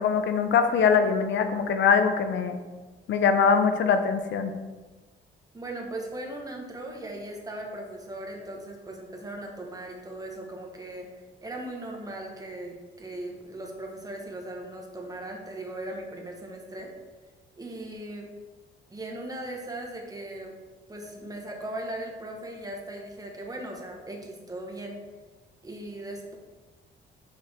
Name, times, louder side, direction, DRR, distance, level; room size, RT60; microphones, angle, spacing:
voice 1, 0.0-2.6 3.1-4.5, left 6 dB, 70° left, 7 dB, 0.7 m, -22 dB
voice 2, 5.5-11.1 11.4-16.9 17.6-18.3 18.9-20.6 20.9-25.0 25.6-26.4, right 1 dB, 20° right, 0 dB, 1.3 m, -38 dB
6.2 x 4.6 x 3.6 m, 1.3 s
cardioid pair, 90°, 20 cm